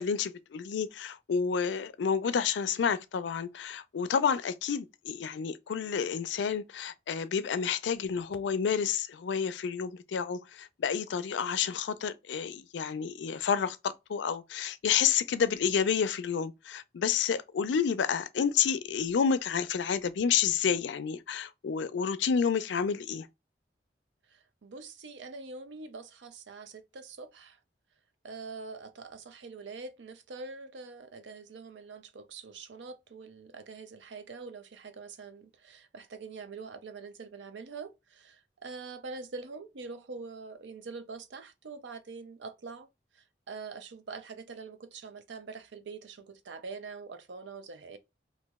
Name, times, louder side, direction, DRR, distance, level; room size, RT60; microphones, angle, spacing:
voice 1, 0.0-23.3, left 7 dB, 85° left, 0.4 m, -30 dB
voice 2, 24.3-27.6 28.2-42.9 43.1-48.0, right 4 dB, 90° right, 0.5 m, -44 dB
3.0 x 2.5 x 3.4 m
head